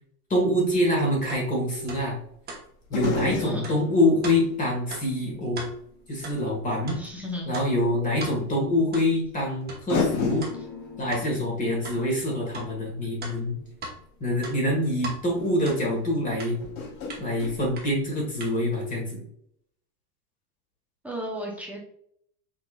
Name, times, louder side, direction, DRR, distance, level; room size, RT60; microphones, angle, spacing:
voice 1, 0.3-2.2 2.9-5.6 6.1-7.0 7.5-10.5 11.0-13.5 14.2-16.6 17.2-19.2, left 1 dB, 15° left, -1 dB, 1.5 m, -25 dB
sound 1, 0.7-0.8 2.9-5.8 6.3-6.4 7.9-8.0 9.2-9.3 9.9-14.0 14.9-15.0 15.4-15.5 16.6-18.5 18.8-18.9, left 5 dB, 40° left, 1.2 m, -34 dB
sound 2, 1.3-1.4 1.9-2.0 2.5-2.6 3.0-3.2 3.6-3.8 4.2-4.4 4.9-5.0 5.5-5.7 6.2-6.4 6.8-7.0 7.5-7.7 8.2-8.3 8.9-9.1 9.7-9.8 10.4-10.6 11.1-11.3 11.8-12.0 12.5-12.7 13.2-14.0 14.4-15.2 15.6-15.8 16.4-16.5 17.1-17.2 17.7-17.9 18.4-18.5, right 2 dB, 20° right, 1.0 m, -38 dB
voice 2, 3.4-3.7 6.9-7.5 21.0-21.8, equal, 5° right, -2 dB, 0.6 m, -34 dB
5.8 x 3.7 x 2.3 m, 0.70 s
supercardioid pair, 145°, 48 cm